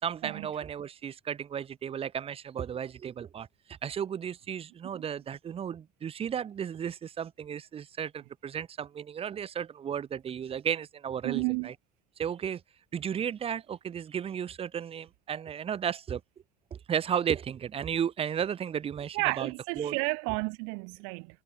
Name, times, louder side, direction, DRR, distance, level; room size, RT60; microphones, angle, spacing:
voice 1, 0.0-11.7 12.2-12.6 12.9-16.2 16.7-20.0, right 8 dB, 30° right, 3.3 m, -34 dB
voice 2, 11.2-11.7 19.2-21.3, right 40 dB or more, 85° right, 0.7 m, -31 dB
cardioid pair, 140°, 18 cm